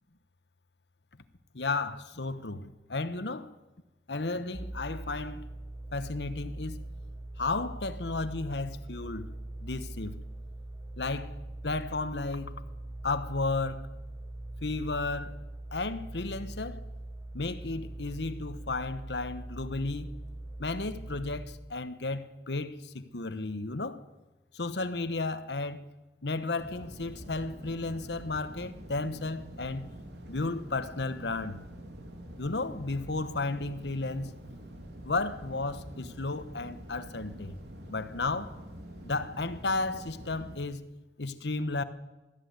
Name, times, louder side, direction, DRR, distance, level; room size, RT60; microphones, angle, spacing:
voice 1, 1.5-3.5 4.1-5.5 5.9-6.8 7.4-9.3 9.6-10.2 11.0-11.3 11.6-12.6 13.0-13.9 14.6-15.4 15.7-16.8 17.3-20.1 20.6-24.0 24.5-25.8 26.2-29.9 30.3-31.6 32.4-34.3 35.0-37.6 37.9-38.5 39.0-40.8 41.2-41.8, left 3 dB, 80° left, 1.2 m, -33 dB
sound 1, 4.5-21.5, right 1 dB, 15° right, 1.6 m, -42 dB
sound 2, 26.6-40.6, equal, 80° right, 3.1 m, -46 dB
20.0 x 13.5 x 9.6 m
head